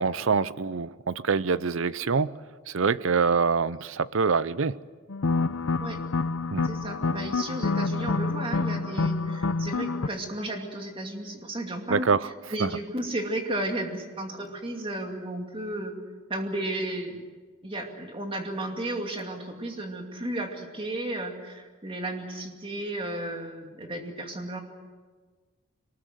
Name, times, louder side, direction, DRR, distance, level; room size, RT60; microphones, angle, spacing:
voice 1, 0.0-2.3 2.7-4.8 6.5-6.6 11.9-12.3 12.6-12.7, right 5 dB, 70° right, 17 dB, 0.6 m, -25 dB
sound 1, 5.1-10.1, left 3 dB, 75° left, 0.7 m, -27 dB
voice 2, 6.6-12.1 12.5-16.0 16.3-17.2 17.6-24.6, right 1 dB, 25° right, 3 dB, 2.4 m, -33 dB
23.0 x 19.5 x 8.0 m, 1.5 s
head